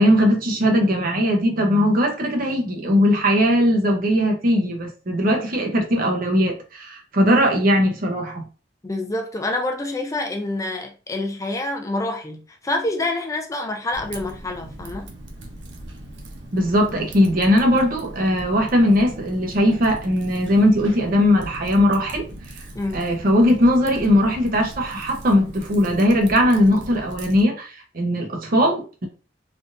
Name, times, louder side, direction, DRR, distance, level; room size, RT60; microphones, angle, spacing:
voice 1, 0.0-8.4 16.5-22.3 22.9-29.1, equal, 50° right, 0.9 m, -19 dB
voice 2, 8.8-15.1 22.8-23.1, left 2 dB, 20° left, 0.4 m, -27 dB
Typing, 13.9-27.4, right 1 dB, 80° right, 0.7 m, -39 dB
3.4 x 2.5 x 2.6 m
head